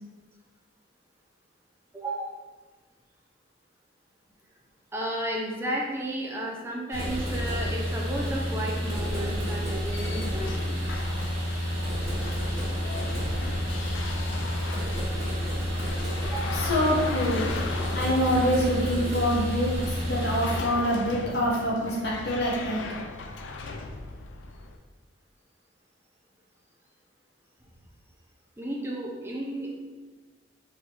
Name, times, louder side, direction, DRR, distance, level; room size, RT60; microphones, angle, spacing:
voice 1, 1.9-2.4 4.9-11.0 16.2-16.6 28.6-29.8, right 1 dB, 15° right, -2 dB, 0.5 m, -33 dB
sound 1, 6.9-20.6, equal, 35° right, 1.5 m, -30 dB
sound 2, 9.6-24.8, left 3 dB, 90° left, 0.4 m, -38 dB
voice 2, 16.5-17.5 17.9-22.8, equal, 60° left, -5 dB, 1.1 m, -26 dB
4.2 x 3.5 x 2.9 m, 1.3 s
head